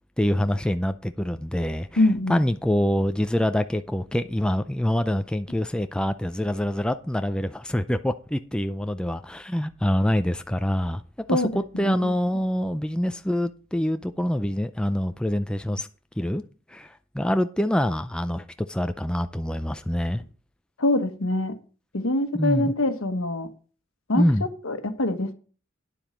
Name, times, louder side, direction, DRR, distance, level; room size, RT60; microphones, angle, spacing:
voice 1, 0.2-2.0 2.3-11.0 11.3-15.9 16.2-16.4 16.7-20.2 22.3-22.7 24.1-24.5, equal, 5° left, 0.4 m, -25 dB
voice 2, 2.0-2.4 11.3-12.4 20.8-21.6 21.9-23.5 24.1-25.3, left 1 dB, 80° left, 1.2 m, -25 dB
9.9 x 7.4 x 5.1 m
head